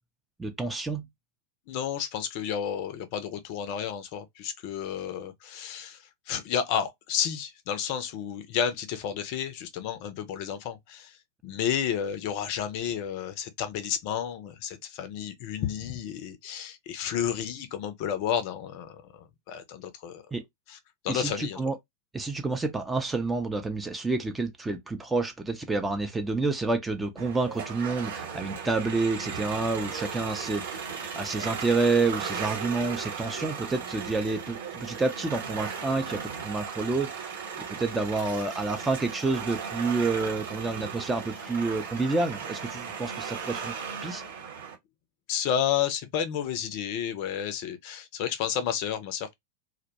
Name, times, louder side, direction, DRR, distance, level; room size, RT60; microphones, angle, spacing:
voice 1, 0.4-1.1 20.3-20.4 21.1-21.8 22.1-37.3 37.6-43.7 44.0-44.2, right 3 dB, 10° right, 0.4 m, -29 dB
voice 2, 1.7-6.0 6.3-11.2 11.4-19.0 19.5-20.2 20.7-20.8 21.0-21.6 45.3-49.3, left 8 dB, 45° left, 0.4 m, -31 dB
sound 1, 27.2-44.7, right 6 dB, 65° right, 0.9 m, -36 dB
2.2 x 2.1 x 2.7 m
figure-of-eight pair, 90°, 0 cm